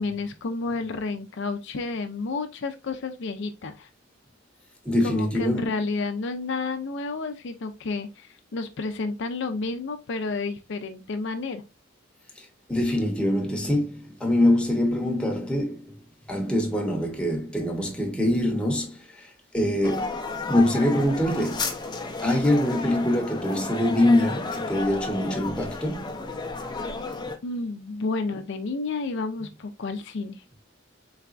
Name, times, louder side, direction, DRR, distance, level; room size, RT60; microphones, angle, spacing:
voice 1, 0.0-3.9 5.0-11.6 27.4-30.4, left 3 dB, 65° left, 0.5 m, -31 dB
voice 2, 4.8-5.7 12.4-16.0 16.3-26.1, left 1 dB, 5° left, 0.9 m, -24 dB
sound 1, 19.8-27.4, left 3 dB, 20° left, 0.5 m, -32 dB
4.0 x 3.4 x 2.4 m
head